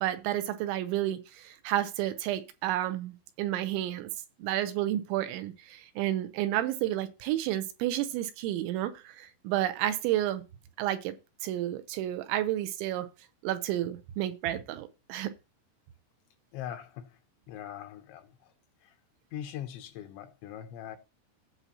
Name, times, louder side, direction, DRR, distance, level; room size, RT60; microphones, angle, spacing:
voice 1, 0.0-4.1 4.4-10.4 10.8-11.1 11.4-13.1 13.4-15.3, right 13 dB, 80° right, 2.9 m, -31 dB
voice 2, 16.5-17.2 17.5-18.5 18.8-19.0 19.3-21.0, left 10 dB, 80° left, 2.9 m, -41 dB
16.5 x 5.8 x 2.8 m
omnidirectional pair, 5.6 m